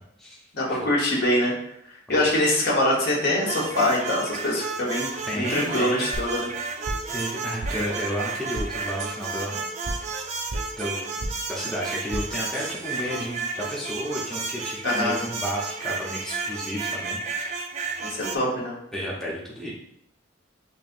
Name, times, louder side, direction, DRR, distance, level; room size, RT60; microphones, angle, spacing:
voice 1, 0.5-1.5 2.1-6.5 14.8-15.2 18.0-18.8, left 1 dB, 55° left, -3 dB, 1.1 m, -24 dB
sound 1, 3.5-18.4, right 4 dB, 35° right, 0.3 m, -32 dB
voice 2, 5.3-6.1 7.1-9.6 10.8-11.2 11.5-17.6 18.9-19.7, equal, 5° left, -5 dB, 0.6 m, -32 dB
sound 2, 6.1-6.2 6.8-7.3 7.6-7.7 8.5-8.7 9.0-9.1 9.8-10.0 10.5-10.9 11.2-11.3 12.1-12.2 12.5-13.5, right 1 dB, 70° right, 0.6 m, -32 dB
5.0 x 2.7 x 2.5 m, 0.75 s
head